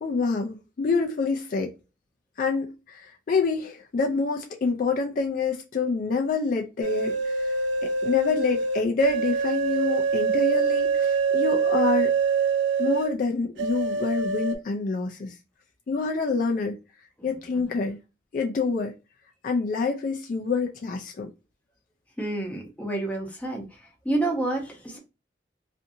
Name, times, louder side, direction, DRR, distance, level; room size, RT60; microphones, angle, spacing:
voice 1, 0.0-1.7 2.4-7.6 7.8-12.1 12.8-15.3 15.9-16.8 17.2-18.0 18.3-18.9 19.4-21.3, left 4 dB, 45° left, 0.3 m, -27 dB
sound 1, 6.8-13.1 13.6-14.5, right 5 dB, 70° right, 0.4 m, -25 dB
voice 2, 22.2-23.6 24.0-25.0, right 2 dB, 10° left, 0.6 m, -29 dB
2.5 x 2.5 x 2.6 m
head